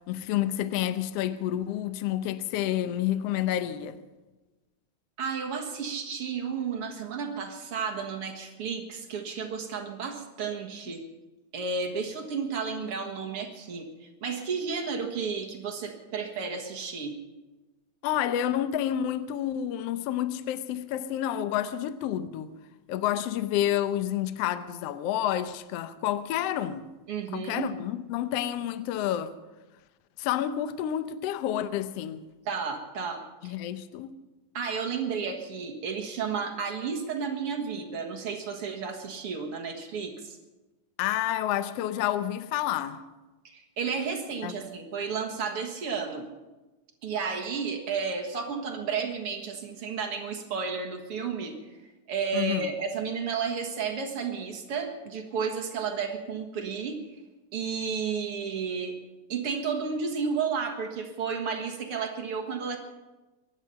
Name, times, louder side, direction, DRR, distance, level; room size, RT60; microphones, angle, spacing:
voice 1, 0.0-4.0 18.0-22.5 22.9-26.9 27.3-29.3 30.2-32.2 33.4-34.1 41.0-43.0 44.4-44.6 52.3-52.7, left 11 dB, 90° left, 1.3 m, -29 dB
voice 2, 5.2-11.0 11.5-17.1 27.1-27.7 32.5-33.5 34.5-40.4 43.4-46.3 47.0-51.5 52.1-57.0 57.5-58.9 59.3-62.8, right 5 dB, 50° right, 2.2 m, -32 dB
23.0 x 11.0 x 5.7 m
omnidirectional pair, 3.8 m